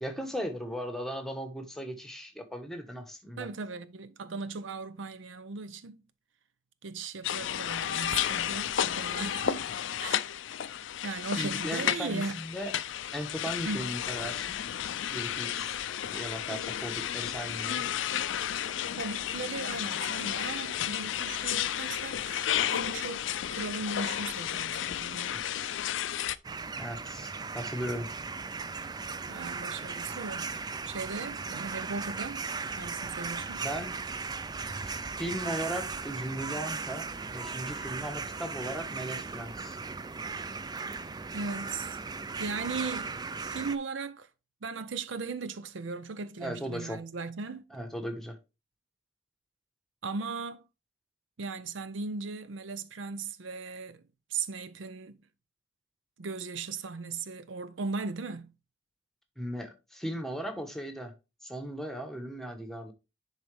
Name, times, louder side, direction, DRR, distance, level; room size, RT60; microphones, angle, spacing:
voice 1, 0.0-3.5 11.4-12.7 13.1-14.6 15.1-15.8 16.1-17.8 25.3-25.8 26.8-28.1 33.6-34.0 34.8-39.8 46.4-47.0 47.7-48.4 59.4-61.1 61.4-62.9, equal, ahead, 1.1 m, -37 dB
voice 2, 3.4-6.0 6.8-9.6 10.0-10.2 11.0-12.4 13.6-13.9 19.0-25.4 29.3-30.5 30.9-32.4 32.8-33.7 41.3-42.0 42.4-44.3 44.6-47.6 50.0-50.6 51.4-54.0 54.3-55.2 56.2-58.5, right 4 dB, 80° right, 0.6 m, -37 dB
sound 1, 7.2-26.4, left 10 dB, 80° left, 0.4 m, -32 dB
sound 2, 26.4-43.8, right 4 dB, 20° right, 0.4 m, -37 dB
10.5 x 4.0 x 3.3 m
head